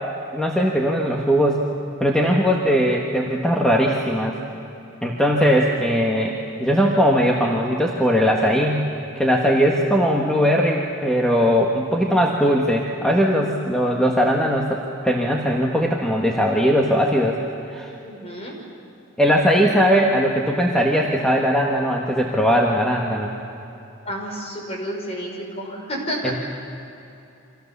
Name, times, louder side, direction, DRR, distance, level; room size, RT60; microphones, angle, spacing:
voice 1, 0.3-1.6 2.0-4.4 5.0-8.9 9.1-17.4 17.7-17.9 19.2-23.3 26.2-26.4, equal, 5° left, -1 dB, 1.6 m, -19 dB
voice 2, 18.0-18.5 24.1-26.3, equal, 30° left, 0 dB, 5.6 m, -30 dB
30.0 x 25.5 x 7.0 m, 2.9 s
head